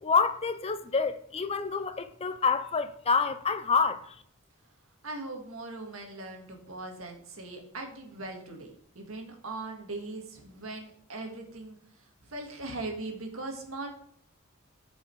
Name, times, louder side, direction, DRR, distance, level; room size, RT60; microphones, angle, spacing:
voice 1, 0.0-4.0, left 5 dB, 30° left, 0.6 m, -27 dB
voice 2, 5.0-11.8 12.3-13.9, right 2 dB, 90° right, 2.0 m, -40 dB
12.0 x 5.5 x 4.7 m
head